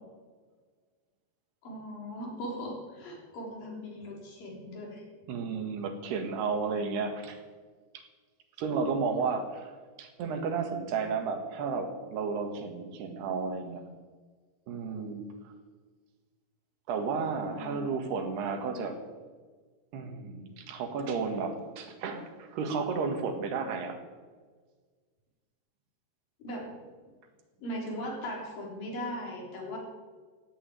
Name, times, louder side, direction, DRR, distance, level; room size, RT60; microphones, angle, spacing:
voice 1, 1.6-5.0 17.5-17.9 26.4-26.7 27.6-29.8, equal, 55° left, 0 dB, 5.1 m, -39 dB
voice 2, 5.3-7.4 8.6-9.7 10.0-13.8 14.7-15.5 16.9-19.0 19.9-24.0, right 5 dB, 75° right, 6 dB, 3.7 m, -32 dB
16.0 x 8.9 x 9.5 m, 1.5 s
omnidirectional pair, 4.8 m